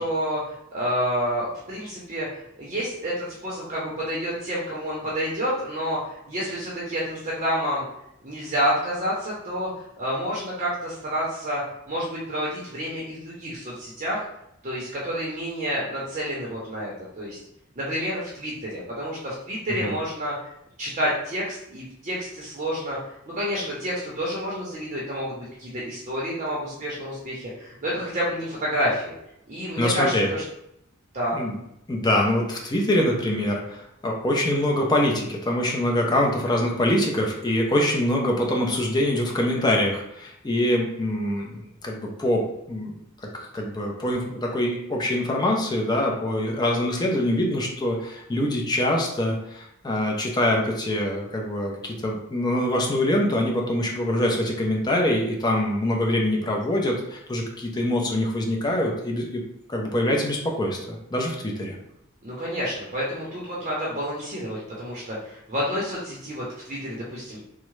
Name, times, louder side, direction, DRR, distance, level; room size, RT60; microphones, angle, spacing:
voice 1, 0.0-2.3 2.6-7.8 8.2-9.7 10.0-14.2 14.6-17.4 17.8-20.5 20.8-23.0 23.3-29.2 29.5-30.4 31.1-31.4 62.2-67.4, equal, 35° right, -5 dB, 0.7 m, -29 dB
voice 2, 29.8-30.3 31.3-31.6 31.9-42.4 42.7-43.0 43.2-59.4 59.7-61.8, left 1 dB, 20° left, 0 dB, 0.5 m, -24 dB
3.5 x 2.1 x 3.1 m, 0.80 s
head